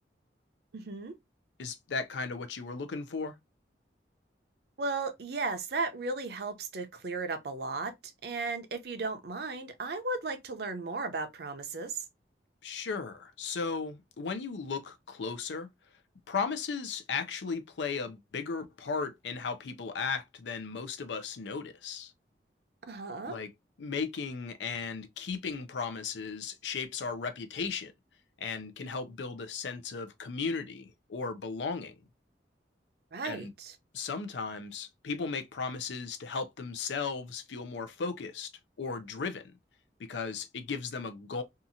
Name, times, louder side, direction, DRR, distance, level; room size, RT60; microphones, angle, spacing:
voice 1, 0.7-1.1 4.8-7.9 8.2-12.0 22.9-23.4 33.1-33.8, right 3 dB, 60° right, 0.6 m, -35 dB
voice 2, 1.6-3.4 12.6-15.7 16.3-22.1 23.3-23.5 23.8-27.9 28.4-31.9 33.2-33.5 33.9-38.5 38.8-39.5 40.0-41.4, left 5 dB, 85° left, 0.5 m, -36 dB
2.8 x 2.4 x 2.5 m
head